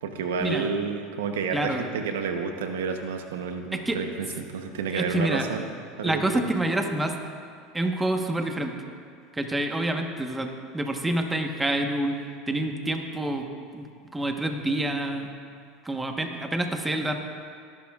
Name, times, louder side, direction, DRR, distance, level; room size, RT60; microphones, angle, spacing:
voice 1, 0.0-5.7 6.0-6.5, right 5 dB, 85° right, 5 dB, 0.9 m, -30 dB
voice 2, 1.5-1.9 3.7-4.0 4.9-5.5 6.0-7.2 7.7-8.7 9.3-13.4 13.7-13.9 14.1-15.3 15.8-17.2, right 1 dB, 10° right, 4 dB, 1.2 m, -27 dB
20.0 x 11.5 x 2.4 m, 2.2 s
hypercardioid pair, 95°, 0 cm